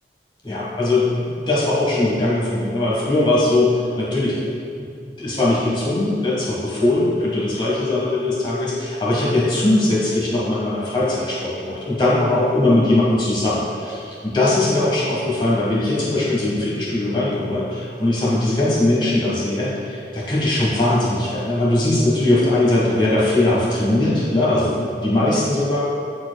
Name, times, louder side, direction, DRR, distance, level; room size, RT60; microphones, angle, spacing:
voice 1, 0.4-4.4 4.8-25.8, left 2 dB, 25° left, -7 dB, 1.5 m, -20 dB
13.0 x 4.5 x 2.3 m, 2.4 s
head